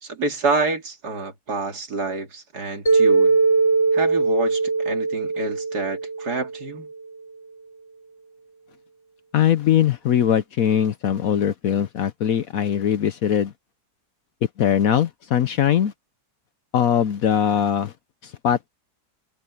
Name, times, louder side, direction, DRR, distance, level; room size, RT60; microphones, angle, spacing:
voice 1, 0.0-3.4 3.9-6.9, right 3 dB, 65° right, 3.1 m, -27 dB
Mallet percussion, 2.9-7.0, right 4 dB, 15° left, 1.2 m, -21 dB
voice 2, 9.3-13.5 14.6-15.9 16.7-17.9 18.2-18.7, left 9 dB, 60° left, 1.0 m, -21 dB
omnidirectional pair, 1.9 m